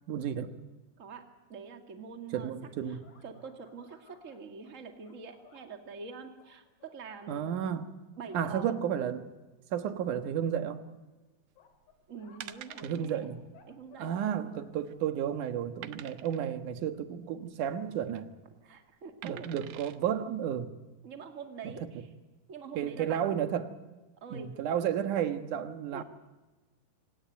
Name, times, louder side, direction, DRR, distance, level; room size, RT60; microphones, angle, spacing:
voice 1, 0.1-0.5 2.3-3.0 7.3-7.9 8.3-9.3 9.7-10.8 12.8-13.4 14.0-18.3 19.2-20.7 21.6-21.7 22.7-23.7 24.3-26.0, right 9 dB, 70° right, 9 dB, 2.8 m, -32 dB
voice 2, 1.5-2.5 2.9-3.0 3.2-7.5 8.2-8.7 12.1-13.2 13.7-14.1 18.6-19.5 21.0-22.0 22.5-23.2 24.2-24.5 25.9-26.0, right 5 dB, 25° right, 5 dB, 2.2 m, -45 dB
sound 1, 2.9-5.7 6.4-7.2 7.7-7.8 8.2-8.5 9.1-9.2 10.6-10.7 11.6-13.3 13.5-15.0, left 7 dB, 75° left, 4.0 m, -60 dB
sound 2, 11.7-11.9 12.4-13.1 13.5-13.6 13.9-14.0 14.6-15.0 15.8-16.5 17.8-18.2 19.2-20.0 20.6-20.7, right 12 dB, 90° right, 2.7 m, -47 dB
26.0 x 18.0 x 9.2 m, 1.2 s
omnidirectional pair, 3.8 m